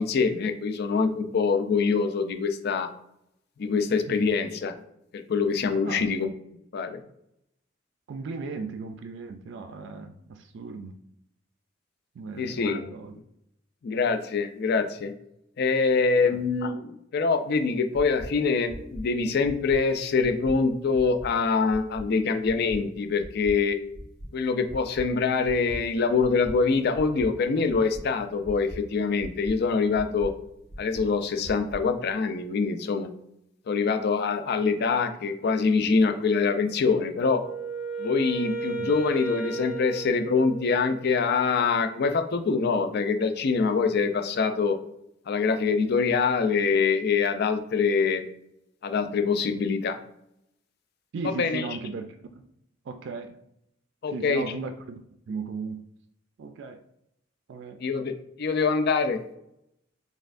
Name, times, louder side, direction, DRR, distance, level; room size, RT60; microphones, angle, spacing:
voice 1, 0.0-2.9 3.6-4.7 5.1-6.3 6.7-7.0 12.4-12.9 13.8-15.1 15.6-23.8 24.3-30.3 30.8-33.1 33.7-37.4 38.0-44.8 45.3-48.2 48.8-50.0 51.4-51.6 54.0-54.4 57.8-58.1 58.4-59.2, left 4 dB, 55° left, 8 dB, 0.4 m, -24 dB
voice 2, 4.1-4.4 5.8-6.1 8.1-11.0 12.2-13.1 16.2-16.4 38.8-38.9 51.1-52.4 52.8-53.4 54.1-55.8 56.4-56.8 57.5-57.8, right 4 dB, 65° right, 7 dB, 0.3 m, -37 dB
sound 1, 17.9-18.2 18.7-19.0 19.4-19.8 20.2-20.5 20.9-21.3 21.7-22.0 22.4-22.8 23.2-23.5 23.9-24.3 24.7-25.0 25.4-25.8 26.2-26.5 26.9-27.2 27.7-28.0 28.4-28.8 29.2-29.5 29.9-30.3 30.7-31.0 31.4-31.8, equal, 85° left, 1.4 m, -40 dB
Wind instrument woodwind instrument, 37.2-41.1, right 3 dB, 5° right, 0.7 m, -34 dB
4.2 x 3.4 x 2.5 m, 0.78 s
head